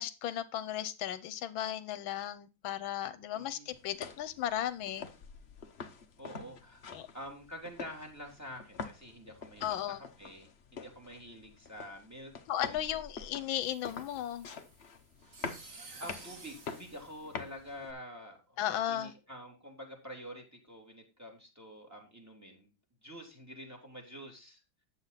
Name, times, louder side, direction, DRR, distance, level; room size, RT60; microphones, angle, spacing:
voice 1, 0.0-5.1 6.9-7.1 9.6-10.0 12.5-14.5 18.6-19.1, left 11 dB, 85° left, 1.5 m, -35 dB
voice 2, 3.3-3.7 6.2-6.8 7.1-12.3 12.6-12.9 15.7-18.6 18.9-22.7 23.0-24.6, equal, 10° right, 3.0 m, -48 dB
sound 1, 3.7-17.9, left 5 dB, 40° left, 1.0 m, -46 dB
sound 2, 13.6-18.0, right 3 dB, 40° right, 2.0 m, -53 dB
9.8 x 7.6 x 4.0 m
omnidirectional pair, 2.2 m